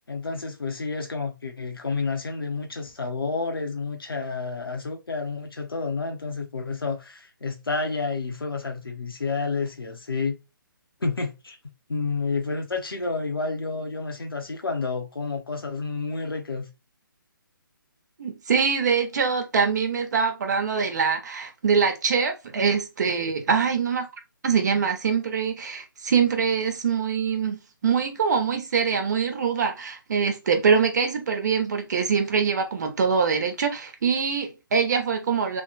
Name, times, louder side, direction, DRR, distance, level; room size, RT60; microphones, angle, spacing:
voice 1, 0.1-10.4 11.0-11.6 11.9-16.7, left 4 dB, 85° left, 0.9 m, -30 dB
voice 2, 18.2-24.1 24.4-27.6 27.8-35.6, right 6 dB, 50° right, 1.1 m, -24 dB
3.2 x 2.2 x 4.0 m
figure-of-eight pair, 145°, 12 cm